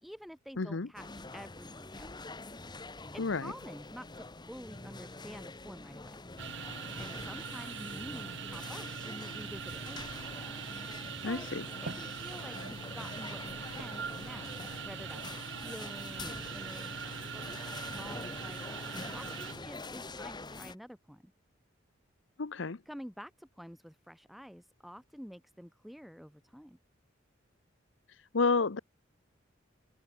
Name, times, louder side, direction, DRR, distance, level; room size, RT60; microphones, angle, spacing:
voice 1, 0.0-2.1 3.1-6.2 7.0-10.1 11.2-11.5 11.8-18.6 19.1-21.3 22.8-26.8, equal, ahead, 1.6 m, -49 dB
voice 2, 0.6-0.9 3.2-3.5 11.2-11.6 22.4-22.8 28.3-28.8, left 4 dB, 70° left, 0.8 m, -30 dB
sound 1, 1.0-20.8, left 3 dB, 25° left, 1.4 m, -46 dB
sound 2, 6.4-19.6, right 6 dB, 65° right, 1.7 m, -42 dB
open air
head